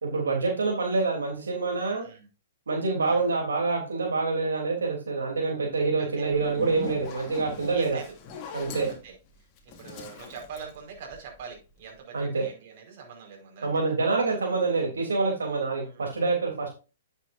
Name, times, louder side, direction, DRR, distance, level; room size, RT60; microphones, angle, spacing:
voice 1, 0.0-2.0 2.7-8.0 8.5-8.9 12.1-12.5 13.6-16.7, right 3 dB, 90° right, 0 dB, 3.3 m, -26 dB
voice 2, 6.0-6.3 7.7-8.2 8.9-9.2 9.6-13.9 15.8-16.1, right 6 dB, 50° right, 1 dB, 5.0 m, -43 dB
Zipper (clothing), 6.3-11.5, left 5 dB, 35° left, 2.5 m, -41 dB
10.0 x 7.9 x 2.6 m, 0.31 s
hypercardioid pair, 135°, 0 cm